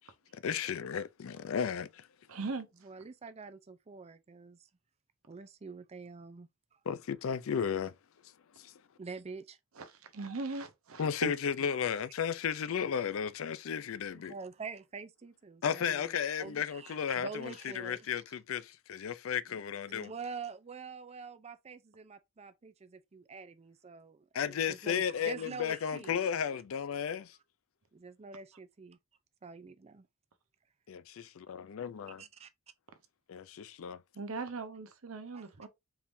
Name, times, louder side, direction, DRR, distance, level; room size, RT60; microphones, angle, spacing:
voice 1, 0.3-2.1 6.9-7.9 8.6-8.7 11.0-14.3 15.6-20.1 24.3-27.4 31.5-32.2 33.3-34.0, left 7 dB, 70° left, 0.4 m, -34 dB
voice 2, 2.3-2.7 9.8-11.3 34.1-35.7, right 3 dB, 85° right, 0.9 m, -39 dB
voice 3, 2.8-4.6 5.3-6.8 9.0-9.6 14.1-18.1 19.9-26.6 27.9-29.0 29.4-30.0 32.2-32.5 35.3-35.7, right 4 dB, 30° right, 0.4 m, -46 dB
4.6 x 3.6 x 2.6 m
head